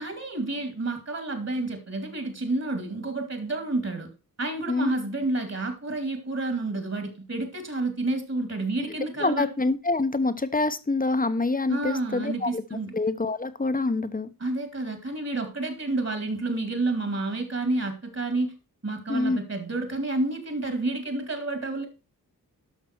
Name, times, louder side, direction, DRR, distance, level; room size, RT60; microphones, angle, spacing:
voice 1, 0.0-4.1 4.4-9.5 11.7-13.0 14.4-18.5 18.8-21.9, right 2 dB, 45° right, 2.5 m, -30 dB
voice 2, 9.2-12.6 12.9-14.3 19.1-19.4, left 3 dB, 25° left, 0.9 m, -26 dB
12.0 x 5.9 x 4.5 m
wide cardioid pair, 95°, 35 cm